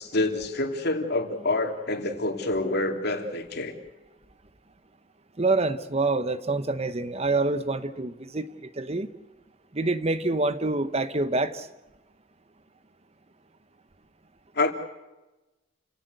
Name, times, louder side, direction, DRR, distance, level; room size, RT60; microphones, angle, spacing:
voice 1, 0.0-3.7 14.5-14.7, left 2 dB, 55° left, 5 dB, 3.0 m, -27 dB
voice 2, 5.4-8.5 8.8-9.1 9.7-11.7, right 3 dB, 35° right, 12 dB, 1.0 m, -26 dB
29.5 x 17.0 x 8.0 m, 1.1 s
head